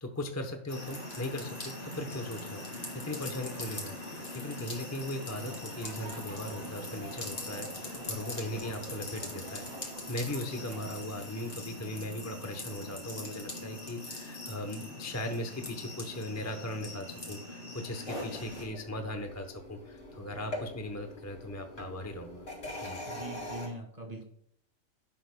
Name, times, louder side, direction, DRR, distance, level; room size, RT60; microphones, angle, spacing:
voice 1, 0.0-9.8 10.1-22.4 22.8-23.0, left 1 dB, 15° left, 5 dB, 0.6 m, -38 dB
sound 1, 0.7-18.6, left 2 dB, 35° left, 3.0 m, -41 dB
sound 2, 5.3-11.1, right 2 dB, 75° right, 2.2 m, -48 dB
sound 3, 18.1-23.7, left 1 dB, 60° left, 3.5 m, -43 dB
voice 2, 23.1-24.3, right 1 dB, 25° right, 2 dB, 2.2 m, -41 dB
11.0 x 11.0 x 2.2 m, 0.67 s
omnidirectional pair, 1.5 m